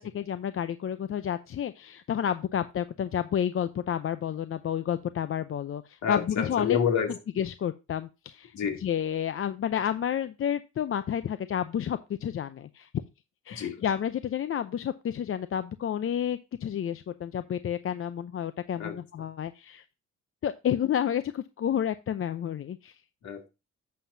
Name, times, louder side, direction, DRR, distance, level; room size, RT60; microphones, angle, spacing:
voice 1, 0.0-6.8 7.4-12.9 13.5-19.8 20.4-22.9, left 9 dB, 45° left, 0.6 m, -30 dB
voice 2, 6.0-7.1 8.5-8.8 13.5-13.8 18.8-19.0 23.2-23.5, left 7 dB, 65° left, 2.5 m, -28 dB
11.5 x 7.5 x 2.7 m
cardioid pair, 90°, 30 cm